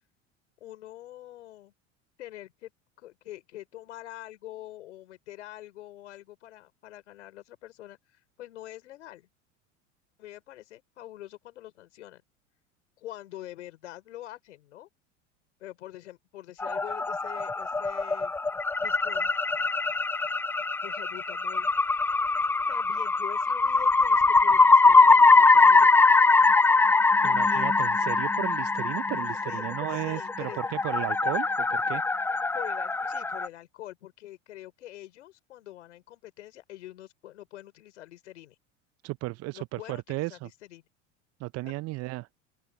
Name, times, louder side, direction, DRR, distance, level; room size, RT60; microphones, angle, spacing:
voice 1, 0.6-1.7 2.2-2.7 3.0-9.3 10.2-12.2 13.0-14.9 15.6-18.4 18.8-19.3 20.8-21.7 22.7-25.9 27.2-27.7 29.4-30.6 32.5-38.6 39.5-40.8 41.6-41.7, left 14 dB, 75° left, 5.5 m, -45 dB
sound 1, 16.6-33.5, left 3 dB, 5° left, 0.4 m, -22 dB
voice 2, 27.2-32.0 39.0-40.5 41.4-42.3, right 20 dB, 40° right, 0.6 m, -34 dB
open air
hypercardioid pair, 80°, 37 cm